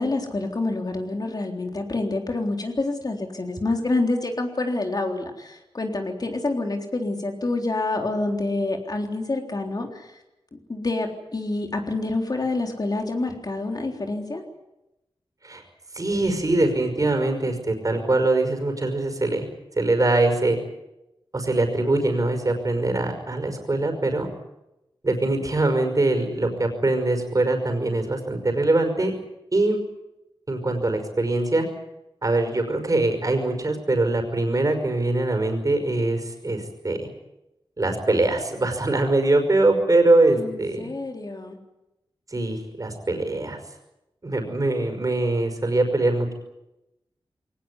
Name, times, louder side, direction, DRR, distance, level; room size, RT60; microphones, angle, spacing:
voice 1, 0.0-10.2 10.5-14.4 40.4-41.6, left 2 dB, 45° left, 3 dB, 3.7 m, -27 dB
voice 2, 15.9-19.5 19.8-20.6 21.3-24.3 25.0-29.1 29.5-29.8 30.5-31.6 32.2-37.1 37.8-40.9 42.3-43.6 44.2-46.3, right 2 dB, 40° right, 5 dB, 5.5 m, -22 dB
22.5 x 18.5 x 9.7 m, 0.93 s
wide cardioid pair, 85°, 10 cm